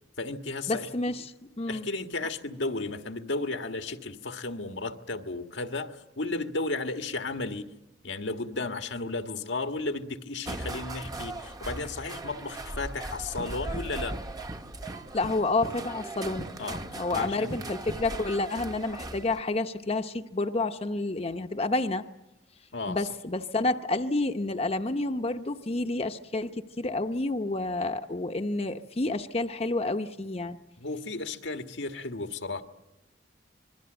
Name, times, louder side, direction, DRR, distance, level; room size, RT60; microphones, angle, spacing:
voice 1, 0.2-0.9 1.7-7.7 8.0-14.2 16.6-16.9 17.1-17.7 22.7-23.0 30.8-32.6, left 3 dB, 90° left, 6 dB, 1.6 m, -34 dB
voice 2, 0.7-1.9 15.1-16.5 16.9-22.0 22.9-30.6, left 2 dB, 35° left, 6 dB, 0.8 m, -29 dB
sound 1, 10.4-19.4, right 2 dB, 20° right, 0.9 m, -38 dB
26.5 x 22.0 x 7.9 m, 0.98 s
head